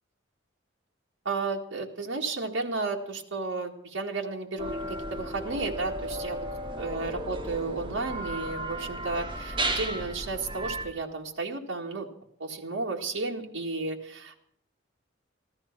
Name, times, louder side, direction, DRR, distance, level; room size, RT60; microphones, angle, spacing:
voice 1, 1.3-6.4 6.8-12.1 12.4-14.4, right 3 dB, 85° right, 0 dB, 1.9 m, -33 dB
sound 1, 4.6-10.8, right 1 dB, 25° right, 3.2 m, -34 dB
15.0 x 13.0 x 5.9 m, 0.73 s
head